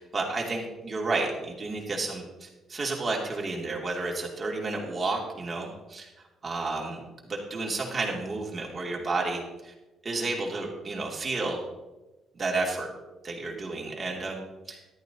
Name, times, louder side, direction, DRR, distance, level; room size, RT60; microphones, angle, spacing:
voice 1, 0.0-6.1 6.4-9.7 10.0-11.6 12.3-12.9 13.2-14.4 14.7-14.8, right 3 dB, 30° right, -2 dB, 2.8 m, -31 dB
14.0 x 12.0 x 2.9 m, 1.1 s
cardioid pair, 125°, 0 cm